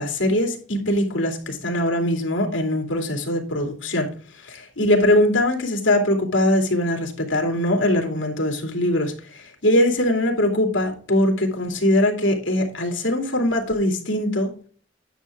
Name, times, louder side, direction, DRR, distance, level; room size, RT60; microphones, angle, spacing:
voice 1, 0.0-4.1 4.4-14.5, left 1 dB, 85° left, 2.7 m, -21 dB
10.5 x 7.3 x 3.6 m
head